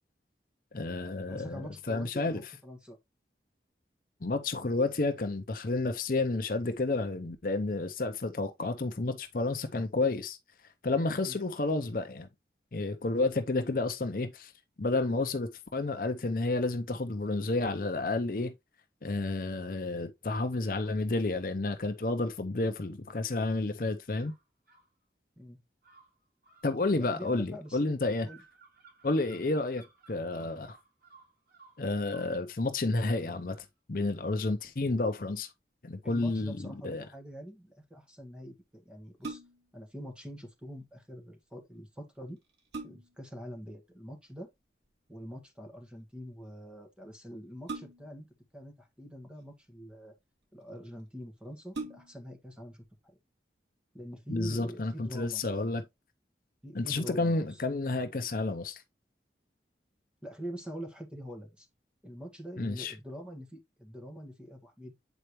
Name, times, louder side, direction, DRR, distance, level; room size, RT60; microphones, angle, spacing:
voice 1, 0.7-2.4 4.2-10.4 10.8-12.3 12.7-14.5 14.8-18.5 19.0-24.3 26.6-28.3 29.0-30.8 31.8-35.5 35.8-37.1 54.3-55.8 56.7-58.8 62.6-62.9, left 2 dB, 50° left, 0.7 m, -31 dB
voice 2, 1.3-3.0 11.2-11.4 25.4-25.6 27.0-27.8 28.2-28.4 36.0-39.4 39.7-42.4 42.8-44.5 45.1-48.3 48.5-50.1 50.5-53.2 53.9-55.7 56.6-57.6 60.2-61.7 62.0-64.9, equal, 5° right, 1.5 m, -44 dB
sound 1, 24.2-24.9 25.8-32.3, right 4 dB, 60° right, 4.2 m, -59 dB
sound 2, 39.0-39.8 41.8-41.9 42.4-43.3 44.8-45.2 47.7-48.3 49.2-49.9 50.7-50.8 51.1-51.2 51.7-52.3 52.8-52.9, right 3 dB, 85° right, 2.3 m, -42 dB
8.1 x 4.4 x 3.0 m
head